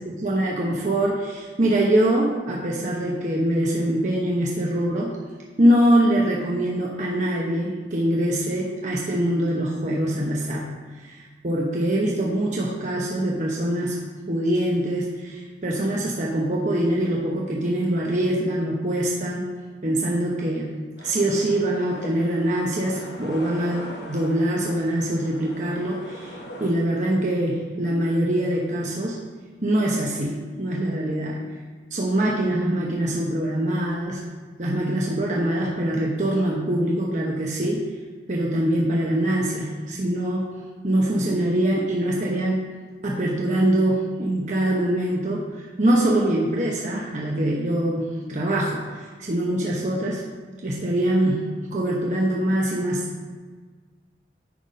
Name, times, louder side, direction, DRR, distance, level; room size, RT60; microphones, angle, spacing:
voice 1, 0.2-5.1 5.6-10.6 11.0-19.5 19.8-20.7 21.0-29.2 29.6-31.4 31.9-34.2 34.6-37.9 38.3-40.6 40.8-42.7 43.0-45.5 45.8-48.8 49.3-50.2 50.6-53.0, right 1 dB, 45° right, -3 dB, 0.9 m, -23 dB
sound 1, 21.0-26.7, left 1 dB, 70° left, 1.2 m, -41 dB
9.5 x 3.9 x 5.2 m, 1.5 s
head